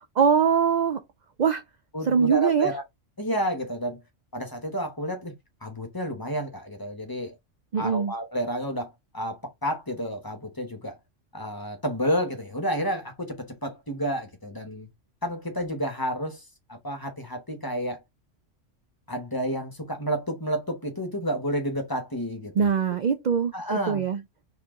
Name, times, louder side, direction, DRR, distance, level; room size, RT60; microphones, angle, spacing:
voice 1, 0.2-1.0 1.4-1.6 2.0-2.7 7.7-8.1 22.6-24.2, right 6 dB, 60° right, 0.5 m, -22 dB
voice 2, 1.9-2.8 3.2-4.0 4.3-5.3 5.6-7.3 7.8-11.0 11.3-14.9 15.2-16.4 16.7-18.0 19.1-22.7 23.5-24.0, equal, 20° left, 1.1 m, -30 dB
4.4 x 3.2 x 3.6 m
omnidirectional pair, 1.3 m